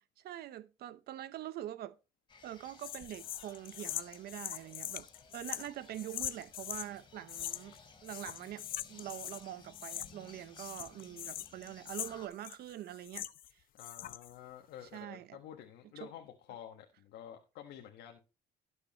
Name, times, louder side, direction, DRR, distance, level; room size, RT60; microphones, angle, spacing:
voice 1, 0.2-1.9 2.4-5.1 5.3-13.3 14.9-15.4 16.0-16.1, right 13 dB, 70° right, 0.8 m, -44 dB
sound 1, 2.3-12.3, left 4 dB, 30° left, 2.9 m, -59 dB
sound 2, 2.8-6.9 7.3-7.8 8.0-9.4 9.7-10.3 10.6-13.5 13.8-14.3, left 12 dB, 60° left, 0.7 m, -42 dB
voice 2, 13.7-18.2, left 10 dB, 80° left, 1.3 m, -50 dB
17.0 x 6.6 x 2.9 m
cardioid pair, 110°, 17 cm